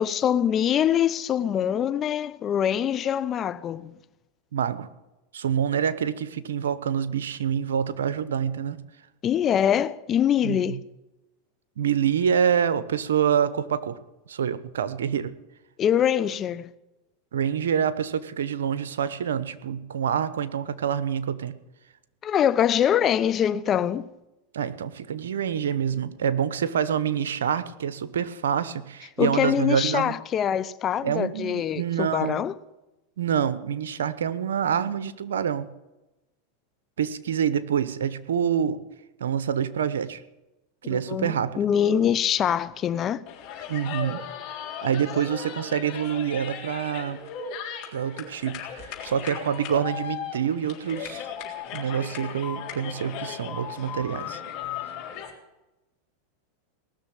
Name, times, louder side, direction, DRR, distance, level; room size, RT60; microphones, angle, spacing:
voice 1, 0.0-3.9 9.2-10.8 15.8-16.7 22.2-24.1 29.2-32.5 40.9-43.2, left 9 dB, 35° left, 0.8 m, -24 dB
voice 2, 4.5-4.9 5.3-8.8 10.4-10.8 11.8-14.0 14.3-15.3 17.3-21.5 24.5-30.2 31.0-32.4 33.2-35.7 37.0-38.8 39.2-40.2 40.8-41.6 43.7-44.2 44.8-47.2 47.9-51.3 51.7-54.4, right 8 dB, 90° right, 1.0 m, -26 dB
sound 1, 43.3-55.3, left 8 dB, 50° left, 3.6 m, -36 dB
18.5 x 6.8 x 9.0 m
hypercardioid pair, 115°, 0 cm